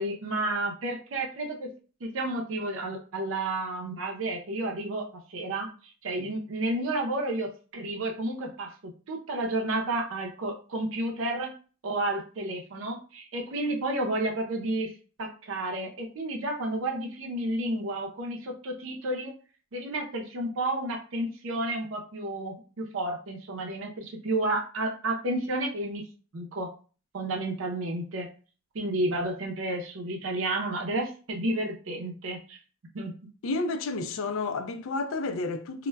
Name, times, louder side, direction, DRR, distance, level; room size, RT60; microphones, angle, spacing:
voice 1, 0.0-1.7 2.0-5.0 5.3-5.7 6.0-8.7 9.1-11.5 11.8-14.9 15.2-19.3 19.7-26.0 26.3-26.7 27.1-28.3 28.7-32.6 32.9-33.1, right 2 dB, 80° right, 0.5 m, -31 dB
voice 2, 33.4-35.9, left 3 dB, 85° left, 0.4 m, -31 dB
2.1 x 2.1 x 3.2 m
head